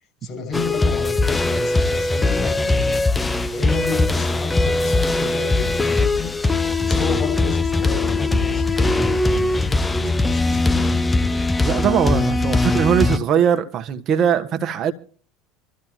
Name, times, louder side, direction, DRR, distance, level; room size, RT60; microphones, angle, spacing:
voice 1, 0.2-3.1 3.5-6.3 6.8-11.0, left 5 dB, 40° left, 6.5 m, -31 dB
sound 1, 0.5-13.2, left 2 dB, 15° left, 0.8 m, -20 dB
voice 2, 11.6-14.9, right 8 dB, 45° right, 1.4 m, -20 dB
25.5 x 13.5 x 2.9 m
hypercardioid pair, 75°, 0 cm